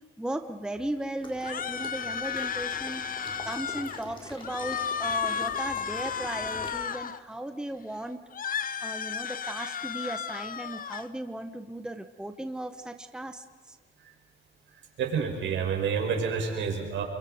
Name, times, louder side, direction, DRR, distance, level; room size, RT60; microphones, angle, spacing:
voice 1, 0.2-3.0 3.4-8.2 8.8-13.8, right 1 dB, 5° right, 8 dB, 1.1 m, -36 dB
Water / Liquid, 1.2-6.7, left 2 dB, 25° left, 4.5 m, -45 dB
sound 1, 1.4-4.0 4.4-7.2 8.3-11.1, left 7 dB, 45° left, 0.9 m, -33 dB
voice 2, 15.0-17.0, right 6 dB, 70° right, 2 dB, 5.0 m, -28 dB
28.0 x 23.5 x 5.2 m, 1.5 s
cardioid pair, 90°, 20 cm